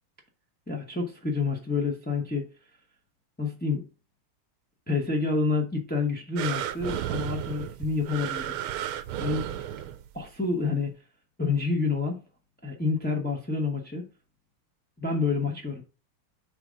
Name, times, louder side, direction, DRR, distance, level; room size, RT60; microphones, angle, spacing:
voice 1, 0.7-2.5 3.4-3.9 4.9-8.6 9.2-9.5 10.1-10.9 11.4-12.2 12.6-14.1 15.0-15.8, left 4 dB, 10° left, 0.4 m, -28 dB
sound 1, 6.4-10.3 10.9-11.0, right 11 dB, 90° right, 1.6 m, -33 dB
6.8 x 3.5 x 5.1 m
omnidirectional pair, 2.3 m